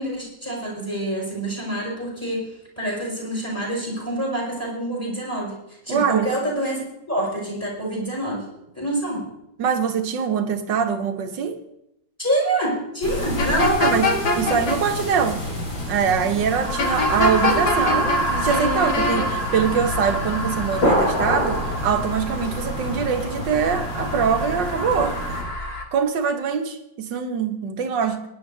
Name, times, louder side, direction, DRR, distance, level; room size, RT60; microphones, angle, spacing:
voice 1, 0.0-8.5 8.7-9.3 12.2-14.0, right 1 dB, 5° left, 5.8 m, -26 dB
voice 2, 5.9-6.3 9.6-11.6 13.8-14.1 14.4-15.5 15.9-25.2 25.9-28.2, right 7 dB, 70° right, 1.7 m, -23 dB
sound 1, 13.0-25.4, left 1 dB, 75° left, 4.5 m, -28 dB
sound 2, 13.4-14.8 16.8-18.2 18.5-19.3, left 3 dB, 55° left, 2.1 m, -22 dB
sound 3, 16.5-25.8, right 1 dB, 35° left, 1.6 m, -28 dB
23.0 x 10.5 x 2.8 m
omnidirectional pair, 2.1 m